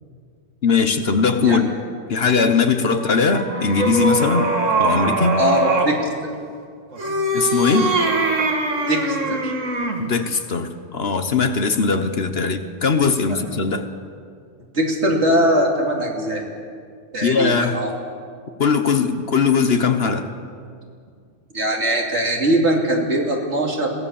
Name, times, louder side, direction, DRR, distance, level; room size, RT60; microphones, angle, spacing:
voice 1, 0.6-1.7 2.1-4.5 4.8-5.4 7.3-7.9 10.0-13.9 17.2-17.8 18.6-20.3, left 5 dB, 55° left, 8 dB, 1.3 m, -19 dB
sound 1, 3.0-6.0 6.9-10.1, right 2 dB, 80° right, 2.3 m, -22 dB
voice 2, 5.4-6.1 8.8-9.5 13.3-13.4 14.7-16.4 17.1-17.9 21.5-23.9, right 1 dB, 60° right, 0 dB, 3.1 m, -21 dB
22.0 x 17.0 x 7.2 m, 2.2 s
omnidirectional pair, 1.3 m